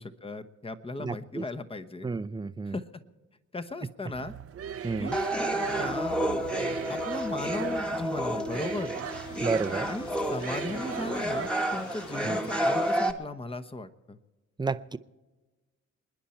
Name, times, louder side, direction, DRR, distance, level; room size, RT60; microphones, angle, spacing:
voice 1, 0.0-2.1 2.7-2.9 3.5-4.3 5.0-5.3 5.7-6.2 6.9-9.0 9.9-14.2, left 2 dB, 20° left, 12 dB, 1.1 m, -37 dB
voice 2, 1.0-1.4 2.0-2.8 4.8-5.2 9.4-9.9 12.2-12.5 14.6-15.0, right 4 dB, 15° right, 14 dB, 0.6 m, -31 dB
sound 1, 4.1-11.5, right 9 dB, 50° right, 0.7 m, -39 dB
sound 2, 5.1-13.1, right 1 dB, 5° left, 1.4 m, -30 dB
sound 3, 9.0-13.2, left 6 dB, 75° left, 1.6 m, -48 dB
28.0 x 10.0 x 4.4 m, 1.2 s
cardioid pair, 90°, 30 cm